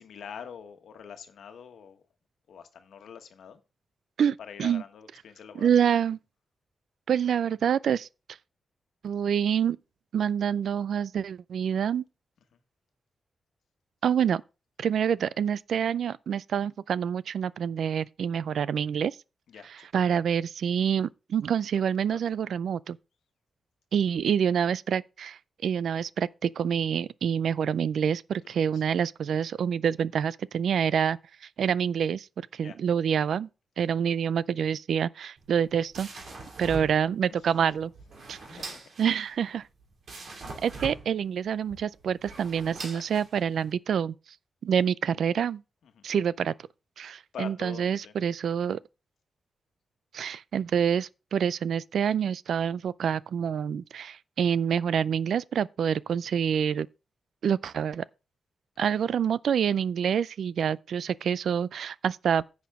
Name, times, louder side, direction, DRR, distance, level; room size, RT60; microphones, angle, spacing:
voice 1, 0.0-2.0 2.5-3.6 4.4-5.7 19.5-20.1 22.1-22.2 28.4-28.8 32.6-32.8 38.3-38.8 39.1-39.2 40.2-40.4 42.8-43.0 46.0-46.1 47.0-48.1, left 7 dB, 85° left, 1.3 m, -45 dB
voice 2, 4.2-4.8 5.5-6.2 7.1-8.1 9.0-9.8 10.1-12.0 14.0-14.4 14.8-19.2 19.6-23.0 23.9-32.3 32.5-33.5 33.8-36.1 36.6-37.9 38.3-38.7 39.0-39.6 40.6-44.1 44.6-45.6 46.0-46.5 47.0-48.8 50.1-56.9 57.4-58.0 58.8-62.4, right 8 dB, 75° right, 0.3 m, -27 dB
sound 1, 35.4-43.7, right 3 dB, 55° right, 2.5 m, -43 dB
10.5 x 7.2 x 3.6 m
wide cardioid pair, 160°, 0 cm